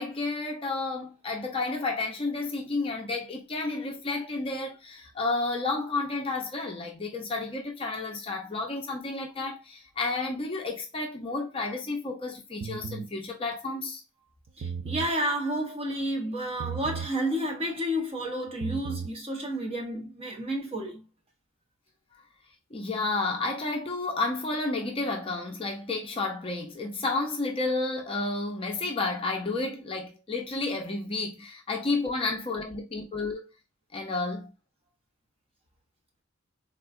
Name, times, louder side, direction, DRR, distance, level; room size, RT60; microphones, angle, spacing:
voice 1, 0.0-14.0 22.7-33.5 33.9-34.5, left 3 dB, 25° left, 0.5 m, -31 dB
sound 1, 12.6-13.1 14.5-15.1 16.6-17.1 18.5-19.1, right 6 dB, 55° right, 0.4 m, -35 dB
voice 2, 14.6-21.0, right 1 dB, 25° right, 0.8 m, -31 dB
3.6 x 2.3 x 2.3 m
head